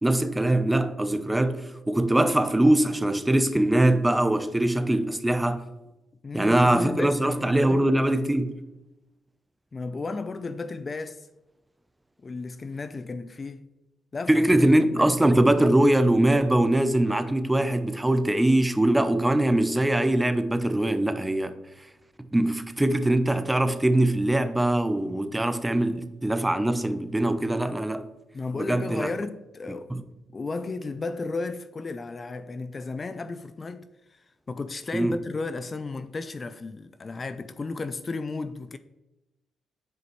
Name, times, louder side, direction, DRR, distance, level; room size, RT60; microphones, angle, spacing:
voice 1, 0.0-5.6 6.3-8.6 14.3-21.5 22.3-28.1 28.6-29.1 29.9-30.0 34.9-35.2, right 1 dB, 10° right, 0.7 m, -22 dB
voice 2, 6.2-7.8 9.7-11.3 12.2-13.7 14.1-14.4 15.0-15.1 28.3-29.9 30.3-38.8, left 3 dB, 35° left, 0.4 m, -34 dB
9.3 x 5.0 x 3.1 m
supercardioid pair, 65°, 0 cm